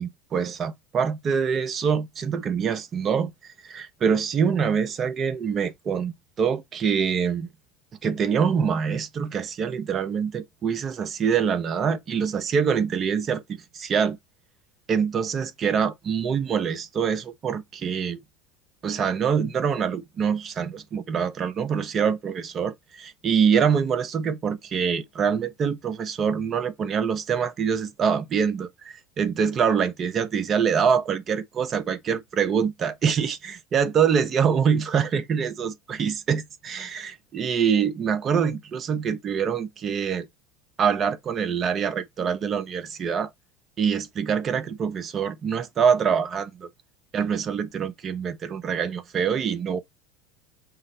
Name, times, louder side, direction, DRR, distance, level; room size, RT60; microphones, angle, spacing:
voice 1, 0.0-7.5 8.0-14.2 14.9-18.2 18.8-40.3 40.8-43.3 43.8-46.7 47.1-49.8, right 7 dB, 40° right, 0.7 m, -25 dB
5.8 x 2.1 x 3.9 m
hypercardioid pair, 85°, 0 cm